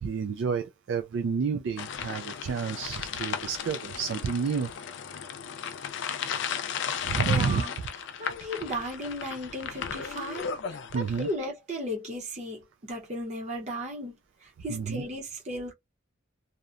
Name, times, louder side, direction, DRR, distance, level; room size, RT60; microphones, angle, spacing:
voice 1, 0.0-4.7 7.0-7.6 10.9-11.3 14.7-15.0, right 6 dB, 65° right, 0.3 m, -30 dB
sound 1, 1.8-11.3, left 7 dB, 60° left, 0.4 m, -35 dB
voice 2, 7.3-7.8 8.2-14.1 14.4-15.7, equal, 35° right, 0.8 m, -35 dB
2.7 x 2.1 x 2.4 m
head